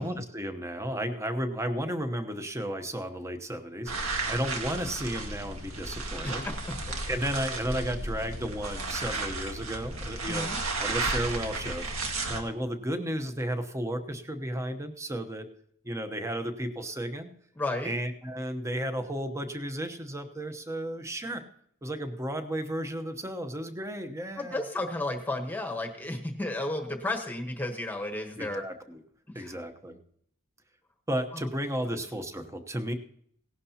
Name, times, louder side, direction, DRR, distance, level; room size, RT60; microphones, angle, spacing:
voice 1, 0.0-6.5 7.1-10.5 10.8-15.5 15.8-17.3 17.8-21.4 21.8-24.6 28.4-29.0 29.3-30.0 31.1-32.9, right 1 dB, 15° right, 8 dB, 0.9 m, -33 dB
sound 1, 3.9-12.4, right 2 dB, 75° right, 1.8 m, -33 dB
voice 2, 6.2-6.8 10.3-10.6 17.6-18.0 24.4-28.6 29.3-29.6 31.3-31.5 31.9-32.0, left 2 dB, 10° left, 4 dB, 1.1 m, -33 dB
17.5 x 11.5 x 2.8 m, 0.66 s
head